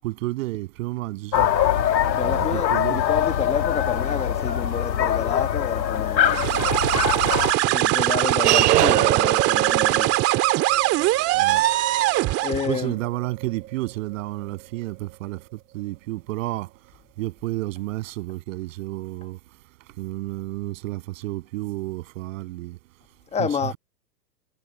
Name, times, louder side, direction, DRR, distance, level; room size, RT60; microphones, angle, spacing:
voice 1, 0.0-1.5 2.2-3.0 11.3-11.7 12.7-16.7 17.2-19.4 20.0-22.8 23.4-23.5, right 18 dB, 50° right, 7.6 m, -31 dB
sound 1, 1.3-7.5, left 10 dB, 85° left, 2.2 m, -23 dB
voice 2, 2.2-6.6 7.5-10.2 11.5-11.7 12.4-13.0 23.3-23.7, left 7 dB, 15° left, 1.2 m, -29 dB
sound 2, 6.2-12.8, right 17 dB, 30° right, 2.4 m, -21 dB
sound 3, 7.7-14.5, right 14 dB, 65° right, 0.9 m, -26 dB
hypercardioid pair, 135°, 50 cm